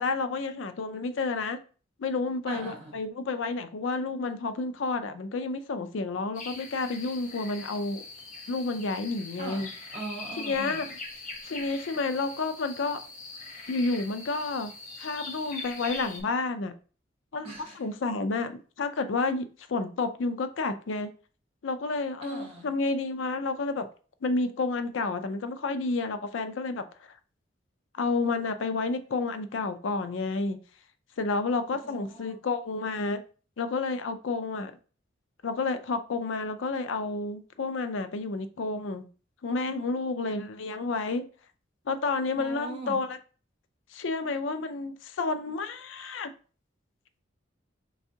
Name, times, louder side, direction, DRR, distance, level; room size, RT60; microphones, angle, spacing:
voice 1, 0.0-1.6 2.0-8.0 8.5-9.7 10.4-10.9 11.5-13.0 13.7-16.7 17.3-17.5 17.8-21.1 21.6-23.9 24.2-27.2 27.9-30.6 31.2-33.2 33.6-34.7 35.4-39.1 39.4-41.2 41.9-43.2 43.9-46.3, left 3 dB, 80° left, 0.4 m, -30 dB
voice 2, 2.5-2.9 9.4-10.8 17.4-17.8 22.2-22.7 31.8-32.5 42.4-43.0, right 3 dB, 30° right, 1.5 m, -40 dB
sound 1, 6.3-16.2, left 3 dB, 40° left, 1.0 m, -42 dB
4.7 x 3.5 x 2.7 m
head